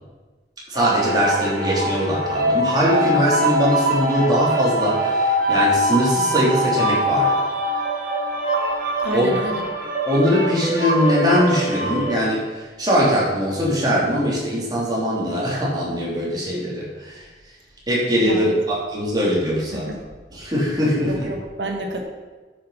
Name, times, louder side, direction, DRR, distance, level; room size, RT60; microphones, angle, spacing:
voice 1, 0.7-7.4 9.1-9.3 10.0-17.3 17.9-19.8 20.4-21.2, equal, 25° right, -6 dB, 3.2 m, -21 dB
sound 1, 0.8-12.1, right 1 dB, 50° right, 2.2 m, -23 dB
voice 2, 9.0-9.6 18.2-18.6 19.7-20.0 21.1-22.0, right 1 dB, 85° right, 2 dB, 1.7 m, -29 dB
10.0 x 6.6 x 5.7 m, 1.3 s
head